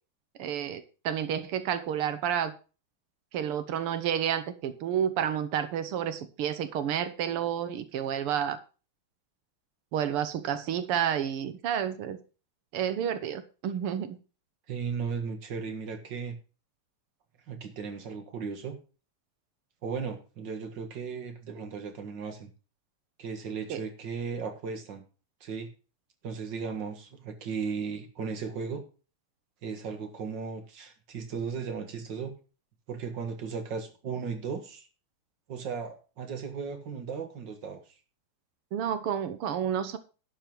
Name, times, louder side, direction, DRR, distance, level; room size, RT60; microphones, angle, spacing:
voice 1, 0.4-2.5 3.3-8.6 9.9-12.2 12.7-14.2 23.7-23.8 38.7-40.0, right 9 dB, 90° right, 12 dB, 2.0 m, -30 dB
voice 2, 14.7-16.4 17.5-18.8 19.8-22.5 23.2-25.0 25.4-25.7 26.2-28.8 29.6-32.4 32.9-34.9 35.5-37.8, right 5 dB, 55° right, 6 dB, 2.3 m, -36 dB
11.5 x 5.8 x 6.0 m, 0.34 s
omnidirectional pair, 2.4 m